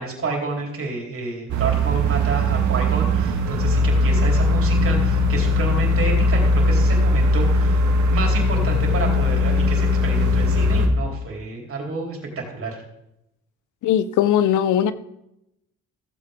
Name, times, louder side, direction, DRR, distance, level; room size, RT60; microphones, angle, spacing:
voice 1, 0.0-7.8 8.1-12.8, right 3 dB, 45° right, 0 dB, 3.8 m, -29 dB
sound 1, 1.5-10.9, left 1 dB, 75° right, 1.7 m, -19 dB
voice 2, 13.8-14.9, left 10 dB, 80° left, 15 dB, 0.7 m, -19 dB
15.5 x 7.8 x 3.7 m, 0.83 s
cardioid pair, 90°, 30 cm